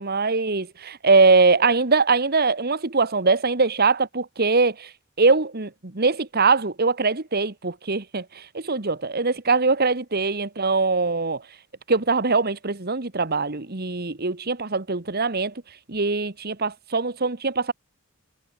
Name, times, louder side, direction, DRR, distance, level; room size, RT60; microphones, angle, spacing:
voice 1, 0.0-4.9 5.2-11.4 11.9-15.5 15.9-17.7, right 4 dB, 45° right, 1.5 m, -22 dB
head